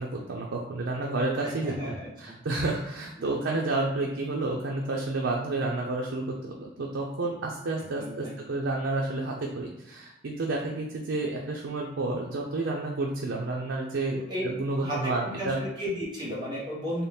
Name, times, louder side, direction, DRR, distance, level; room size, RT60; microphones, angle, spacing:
voice 1, 0.0-14.2 14.4-15.6, right 2 dB, 85° right, -1 dB, 0.5 m, -30 dB
voice 2, 1.4-2.3 3.2-3.4 8.0-8.4 14.1-14.4 14.8-17.0, equal, 25° right, -6 dB, 1.2 m, -34 dB
4.1 x 2.3 x 3.4 m, 0.95 s
head